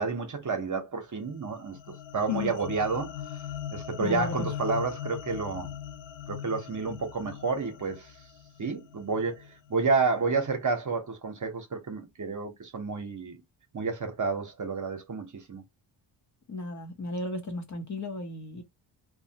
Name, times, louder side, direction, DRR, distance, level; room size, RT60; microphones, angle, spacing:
voice 1, 0.0-1.8 2.1-3.1 3.7-5.7 6.3-8.1 8.6-9.4 9.7-13.4 13.7-15.6, right 4 dB, 40° right, 0.9 m, -30 dB
sound 1, 1.3-9.7, left 9 dB, 60° left, 0.5 m, -40 dB
voice 2, 4.0-4.5 16.5-18.6, left 3 dB, 35° left, 0.9 m, -34 dB
3.0 x 2.2 x 2.8 m
cardioid pair, 120°, 49 cm